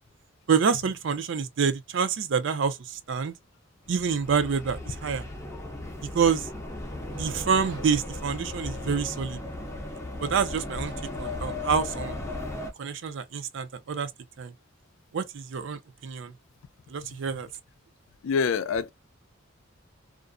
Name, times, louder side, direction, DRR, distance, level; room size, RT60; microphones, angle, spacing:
voice 1, 0.5-3.3 3.9-5.2 6.1-6.5 7.1-9.4 10.2-12.2 12.8-14.1 14.4-14.5 15.1-16.3 16.9-17.5, right 6 dB, 65° right, 0.4 m, -27 dB
sound 1, 3.8-12.7, left 2 dB, 15° left, 0.5 m, -36 dB
voice 2, 18.2-18.9, left 5 dB, 80° left, 0.4 m, -26 dB
2.4 x 2.0 x 2.4 m
head